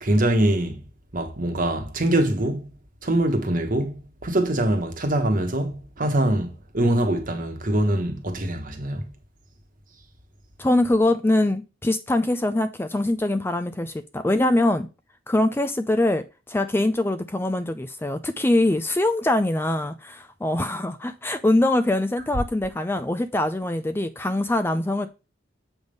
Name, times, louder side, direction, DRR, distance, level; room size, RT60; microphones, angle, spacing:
voice 1, 0.0-0.8 1.1-2.7 3.0-9.1 22.2-22.3, right 1 dB, 45° right, 1.2 m, -23 dB
voice 2, 10.6-14.9 15.3-25.1, left 1 dB, 10° left, 0.4 m, -23 dB
7.9 x 3.5 x 5.2 m
head